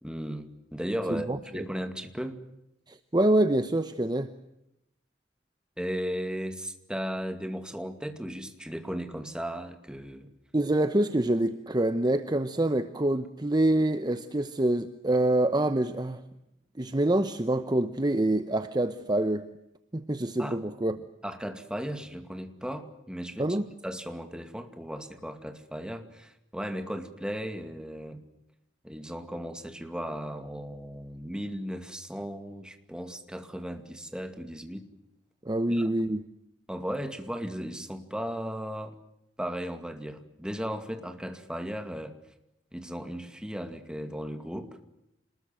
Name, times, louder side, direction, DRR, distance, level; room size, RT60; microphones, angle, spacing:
voice 1, 0.0-1.3 1.5-2.4 5.8-10.3 20.4-20.6 21.2-23.5 23.8-28.2 28.8-34.9 35.7-35.9 36.7-39.0 39.4-42.1 42.7-44.7, equal, 5° right, 7 dB, 2.3 m, -36 dB
voice 2, 2.9-4.3 10.5-16.2 16.8-19.5 19.9-21.0 23.4-23.6 35.4-36.2, right 1 dB, 20° right, 10 dB, 0.9 m, -26 dB
27.0 x 20.5 x 7.6 m, 0.83 s
head